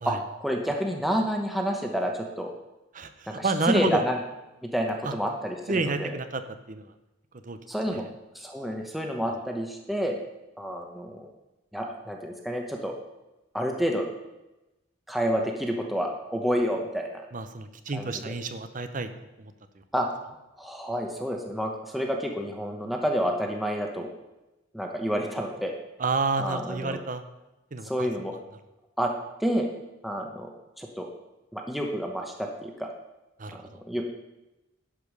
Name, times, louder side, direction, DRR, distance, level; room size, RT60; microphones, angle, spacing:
voice 1, 0.0-2.5 3.4-4.2 4.6-6.1 7.7-8.0 8.3-10.1 10.6-11.3 11.7-13.0 13.5-14.1 15.1-17.2 17.9-18.1 19.9-20.1 20.6-24.1 24.7-25.7 26.4-27.0 27.8-28.3 29.0-29.1 29.4-29.7 30.0-30.5 30.8-31.1 31.5-32.9 33.9-34.1, equal, ahead, 1 dB, 0.9 m, -29 dB
voice 2, 2.9-4.0 5.0-5.1 5.7-6.4 6.7-6.9 7.4-7.6 7.9-8.1 17.3-19.5 26.0-27.2 27.7-28.1 33.4-33.8, right 3 dB, 45° right, 9 dB, 0.8 m, -30 dB
11.0 x 5.3 x 6.5 m, 1.0 s
head